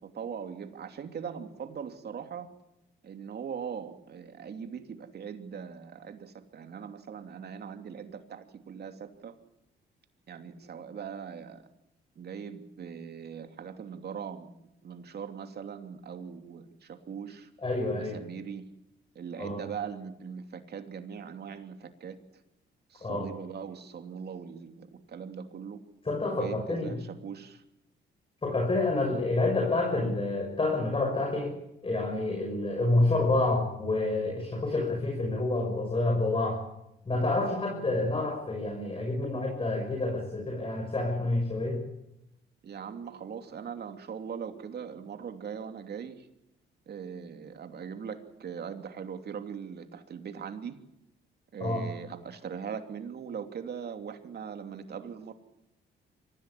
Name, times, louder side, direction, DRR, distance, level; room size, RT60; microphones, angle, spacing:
voice 1, 0.0-2.5 3.0-9.3 10.3-11.7 12.2-14.5 14.8-17.5 17.9-18.6 19.1-22.2 22.9-25.8 26.3-27.6 42.6-46.3 46.9-50.8 51.5-55.3, right 7 dB, 55° right, 7 dB, 2.9 m, -40 dB
voice 2, 17.6-18.2 19.4-19.6 23.0-23.3 26.0-27.0 28.4-31.6 31.8-36.6 37.1-41.8 51.6-51.9, left 2 dB, 25° left, 2 dB, 6.1 m, -28 dB
24.5 x 16.0 x 9.9 m, 0.87 s
cardioid pair, 90°, 20 cm